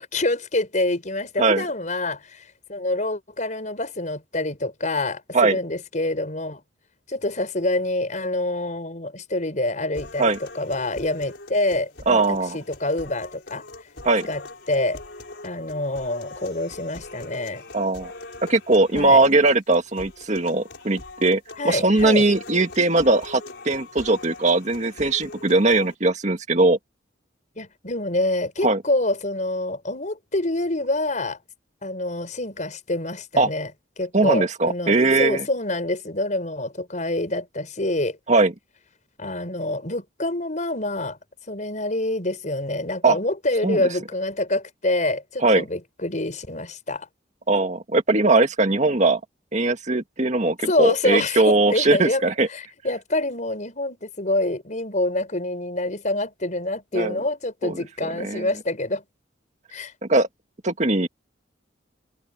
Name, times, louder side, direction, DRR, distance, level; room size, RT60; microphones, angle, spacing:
voice 1, 0.0-2.4 2.7-6.6 7.1-12.2 12.5-13.6 14.3-14.4 14.7-15.0 15.4-17.6 18.9-19.2 21.6-22.2 27.6-31.4 31.8-33.7 34.0-38.2 39.2-41.2 41.5-47.1 50.6-52.2 52.5-59.0 59.7-59.9, left 2 dB, 45° left, 6.0 m, -26 dB
sound 1, 9.9-25.9, left 2 dB, 65° left, 5.7 m, -42 dB
voice 2, 12.1-12.6 14.0-14.3 17.7-18.1 18.5-26.8 28.6-28.8 33.4-33.5 34.1-35.4 38.3-38.5 43.0-43.2 43.6-43.9 45.4-45.7 47.5-49.2 49.5-52.5 56.9-57.2 57.6-57.8 58.2-58.5 60.1-60.3 60.6-61.1, right 2 dB, 40° right, 2.1 m, -20 dB
head